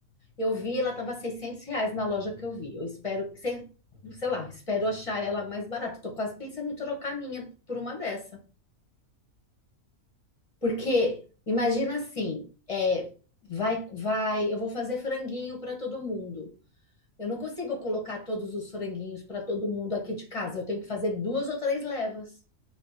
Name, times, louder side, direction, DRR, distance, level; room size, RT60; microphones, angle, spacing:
voice 1, 0.4-3.7 4.0-8.3 10.6-11.2 11.5-13.1 13.5-16.5 17.2-22.3, left 2 dB, 30° left, 1 dB, 0.6 m, -30 dB
2.8 x 2.0 x 3.9 m, 0.35 s
omnidirectional pair, 1.5 m